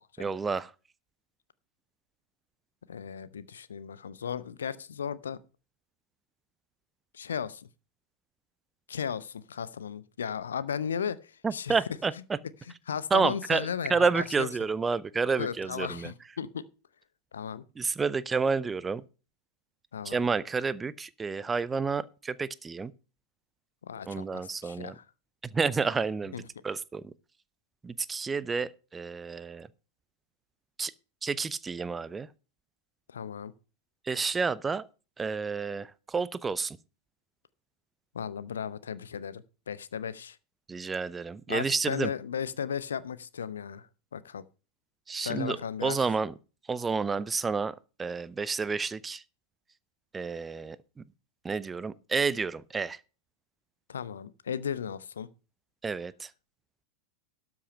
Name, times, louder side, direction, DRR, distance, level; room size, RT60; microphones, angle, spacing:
voice 1, 0.2-0.7 11.4-12.1 13.1-16.1 17.8-19.0 20.0-22.9 24.1-25.0 25.5-26.4 26.6-27.1 27.8-29.7 30.8-30.9 31.2-32.3 34.1-34.9 35.2-36.8 40.7-42.1 45.1-46.3 46.7-49.2 50.1-50.8 51.4-53.0 55.8-56.3, right 5 dB, 15° right, 0.5 m, -30 dB
voice 2, 2.9-5.4 7.1-7.7 8.9-11.8 12.9-14.5 15.4-16.6 17.3-17.6 19.9-20.2 23.8-25.0 26.3-26.4 33.1-33.5 38.1-40.4 41.5-44.4 45.2-46.0 53.9-55.3, left 7 dB, 65° left, 0.6 m, -35 dB
12.5 x 6.0 x 5.4 m
figure-of-eight pair, 90°, 0 cm